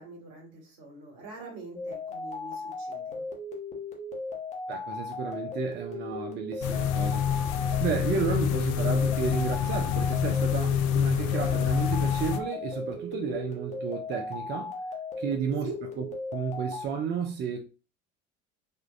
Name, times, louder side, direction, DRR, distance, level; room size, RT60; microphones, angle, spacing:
voice 1, 0.0-3.3 15.6-15.8, right 3 dB, 55° right, 1.6 m, -44 dB
sound 1, 1.8-16.9, left 3 dB, 15° left, 0.9 m, -37 dB
voice 2, 4.7-7.2 7.8-14.8 15.2-15.7 16.0-16.1 16.3-17.6, right 6 dB, 25° right, 0.4 m, -32 dB
sound 2, 6.6-12.4, left 9 dB, 40° left, 0.4 m, -27 dB
3.5 x 2.3 x 2.4 m
figure-of-eight pair, 70°, 41 cm